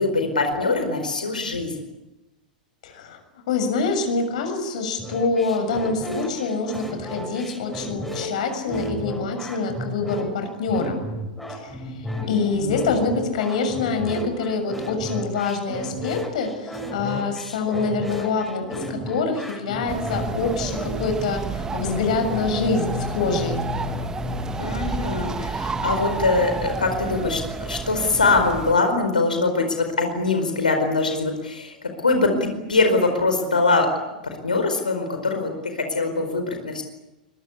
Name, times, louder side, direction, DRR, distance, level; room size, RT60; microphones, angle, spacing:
voice 1, 0.0-1.7 12.2-13.0 24.6-33.9 34.2-36.8, left 3 dB, 80° left, 6 dB, 4.8 m, -23 dB
voice 2, 2.8-3.2 3.5-11.1 11.5-11.8 12.3-23.6, left 4 dB, 60° left, 7 dB, 6.8 m, -25 dB
sound 1, 5.0-20.9, equal, 5° left, 7.2 m, -33 dB
sound 2, 19.9-28.7, right 4 dB, 15° right, 1.9 m, -30 dB
sound 3, 21.8-27.7 28.0-28.5 28.8-29.2, left 7 dB, 40° left, 1.7 m, -36 dB
25.5 x 22.5 x 8.6 m, 0.99 s
figure-of-eight pair, 95°, 4 cm